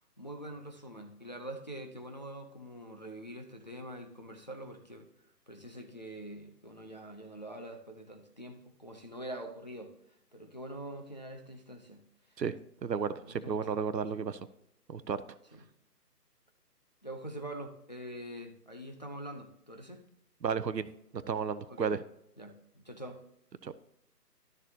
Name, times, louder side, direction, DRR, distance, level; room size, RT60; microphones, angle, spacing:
voice 1, 0.0-5.1 5.5-10.0 10.3-12.0 12.3-12.4 13.3-13.6 15.5-15.6 17.0-20.0 21.7-21.9 22.4-23.2, right 1 dB, 25° left, 3 dB, 0.6 m, -44 dB
voice 2, 12.4-14.4 14.9-15.2 20.4-22.0 23.6-23.7, right 6 dB, 85° right, 14 dB, 0.8 m, -33 dB
12.5 x 6.7 x 2.8 m, 0.78 s
figure-of-eight pair, 160°, 49 cm